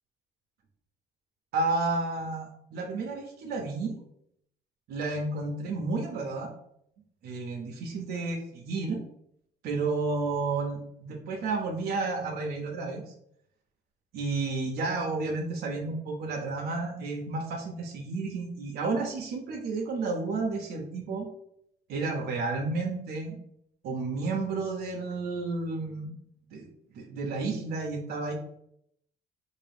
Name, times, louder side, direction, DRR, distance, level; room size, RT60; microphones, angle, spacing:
voice 1, 1.5-4.0 4.9-6.5 7.2-8.4 8.7-9.0 9.6-13.1 14.1-21.3 21.9-23.4 23.8-26.1 26.5-26.7 26.9-28.3, right 3 dB, 70° right, 1 dB, 0.7 m, -31 dB
3.6 x 2.5 x 3.4 m, 0.72 s
cardioid pair, 110°, 17 cm